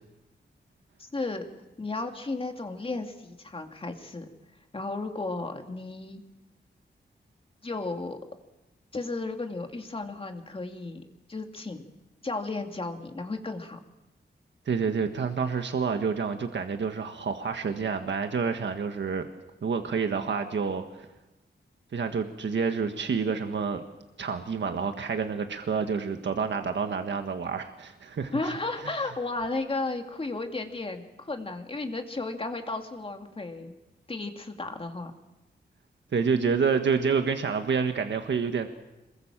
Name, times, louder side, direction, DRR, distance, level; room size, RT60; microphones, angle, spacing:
voice 1, 1.0-1.5 1.8-4.3 4.7-6.2 7.6-8.2 8.9-11.0 11.3-11.8 12.2-13.8 28.3-33.7 34.1-35.1, left 3 dB, 30° left, 4 dB, 2.5 m, -34 dB
voice 2, 14.6-19.3 19.6-21.1 21.9-23.8 24.2-28.5 28.8-28.9 36.1-38.7, right 5 dB, 80° right, 6 dB, 1.6 m, -28 dB
27.5 x 21.5 x 7.5 m, 1.0 s
wide cardioid pair, 160°, 19 cm